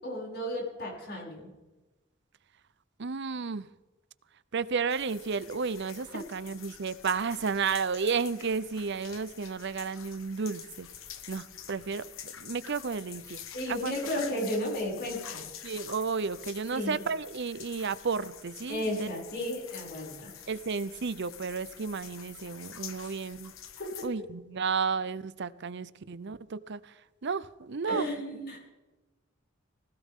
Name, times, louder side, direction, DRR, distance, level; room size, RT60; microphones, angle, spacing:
voice 1, 0.0-1.5 13.5-15.4 16.7-16.9 18.7-20.3 23.0-23.1 23.8-24.0 27.8-28.6, left 1 dB, 55° left, -2 dB, 6.7 m, -34 dB
voice 2, 3.0-3.7 4.5-10.9 11.3-14.0 15.6-19.1 20.5-23.5 24.0-28.6, right 5 dB, 60° right, 16 dB, 0.7 m, -33 dB
sound 1, 4.9-24.1, left 9 dB, 85° left, 1.3 m, -47 dB
20.0 x 16.5 x 3.7 m, 1.1 s
head